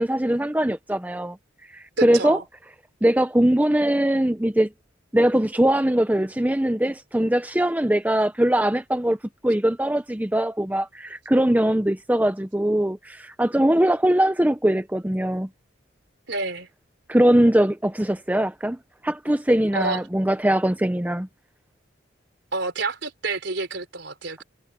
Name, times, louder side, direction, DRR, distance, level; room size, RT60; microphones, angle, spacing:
voice 1, 0.0-1.4 1.7-2.4 3.0-4.7 5.1-9.2 9.4-15.5 17.1-18.8 19.0-21.3, right 1 dB, 10° right, 0.6 m, -21 dB
voice 2, 2.0-2.4 16.3-16.7 19.7-20.0 22.5-24.4, right 3 dB, 65° right, 4.4 m, -28 dB
head